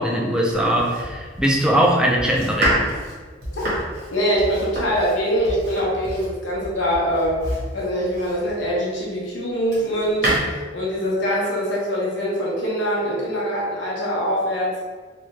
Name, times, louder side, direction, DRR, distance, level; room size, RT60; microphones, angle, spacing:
voice 1, 0.0-2.9, equal, 5° right, -2 dB, 0.4 m, -20 dB
Domestic sounds home sounds, 0.5-8.7 9.2-10.4, right 1 dB, 60° right, 1.1 m, -28 dB
voice 2, 4.1-7.4 7.7-14.7, equal, 90° left, -5 dB, 1.0 m, -23 dB
3.2 x 2.3 x 3.1 m, 1.4 s
head